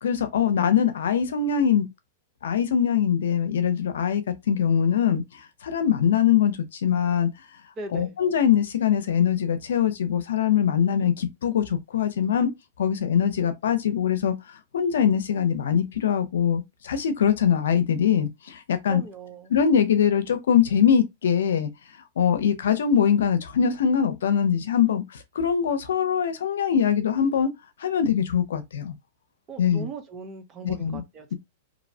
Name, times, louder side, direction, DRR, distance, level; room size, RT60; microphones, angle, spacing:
voice 1, 0.0-1.9 2.4-5.2 5.6-7.3 7.9-12.5 12.8-14.3 14.7-19.0 19.5-21.7 22.2-25.0 25.4-27.5 27.8-28.9 29.6-29.9 30.6-31.0, left 8 dB, 90° left, 0.5 m, -22 dB
voice 2, 7.8-8.2 18.9-19.5 29.5-31.3, right 4 dB, 25° right, 0.6 m, -39 dB
2.6 x 2.0 x 2.6 m
supercardioid pair, 150°, 0 cm